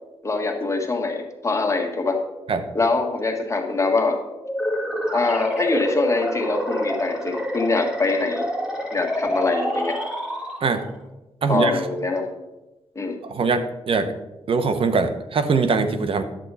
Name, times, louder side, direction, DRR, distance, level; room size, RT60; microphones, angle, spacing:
voice 1, 0.2-2.2 2.7-4.2 5.1-8.5 8.9-10.0 11.5-12.3 13.0-13.2, left 3 dB, 30° left, 3 dB, 1.7 m, -23 dB
sound 1, 4.4-10.9, equal, 5° right, 2.6 m, -27 dB
voice 2, 11.4-11.8 13.2-14.1 14.5-16.2, right 4 dB, 60° right, 9 dB, 1.0 m, -22 dB
10.5 x 7.6 x 4.1 m, 1.0 s
cardioid pair, 75°, 11 cm